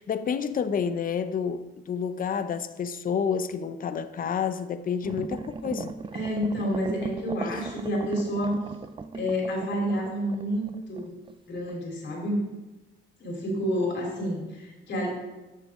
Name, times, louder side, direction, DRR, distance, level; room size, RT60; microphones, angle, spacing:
voice 1, 0.0-5.9 7.5-7.6, left 7 dB, 45° left, 11 dB, 0.7 m, -29 dB
sound 1, 5.0-11.3 11.7-11.8, right 4 dB, 25° right, 0.5 m, -38 dB
voice 2, 6.1-8.6 9.1-11.2 11.5-12.4 13.2-15.3, equal, 65° left, 0 dB, 3.3 m, -29 dB
13.0 x 6.8 x 3.7 m, 1.1 s
cardioid pair, 90°, 20 cm